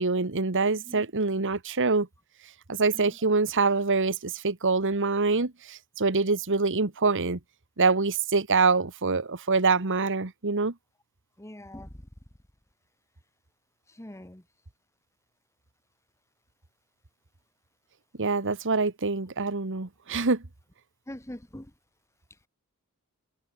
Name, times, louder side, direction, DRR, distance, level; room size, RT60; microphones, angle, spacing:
voice 1, 0.0-2.1 2.7-7.4 7.8-10.7 18.2-20.4, right 4 dB, 60° right, 1.5 m, -25 dB
voice 2, 11.4-11.9 14.0-14.4 21.1-21.6, left 1 dB, 15° left, 1.6 m, -42 dB
head